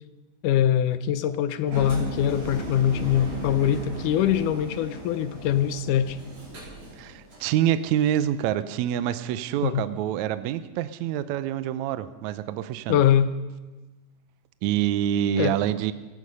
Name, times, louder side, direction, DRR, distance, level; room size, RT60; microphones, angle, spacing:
voice 1, 0.4-6.2 9.6-9.9 12.9-13.3 15.4-15.6, left 10 dB, 85° left, 12 dB, 2.3 m, -23 dB
Engine, 1.7-7.5, right 1 dB, 55° right, 5.6 m, -36 dB
voice 2, 7.0-13.0 14.6-15.9, right 11 dB, 75° right, 12 dB, 1.9 m, -26 dB
17.0 x 14.5 x 5.5 m, 1.2 s
omnidirectional pair, 3.5 m